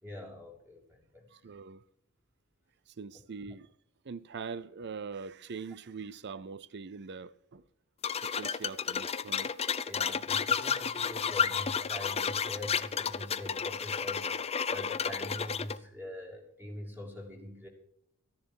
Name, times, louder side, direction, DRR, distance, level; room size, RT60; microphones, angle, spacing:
voice 1, 0.0-1.3 9.9-17.7, left 1 dB, 10° right, 3.1 m, -44 dB
voice 2, 1.3-1.8 2.9-3.7 4.0-7.6 8.2-9.5, right 5 dB, 50° right, 0.5 m, -42 dB
sound 1, 8.0-15.8, left 6 dB, 30° left, 0.5 m, -32 dB
14.5 x 10.5 x 4.7 m
head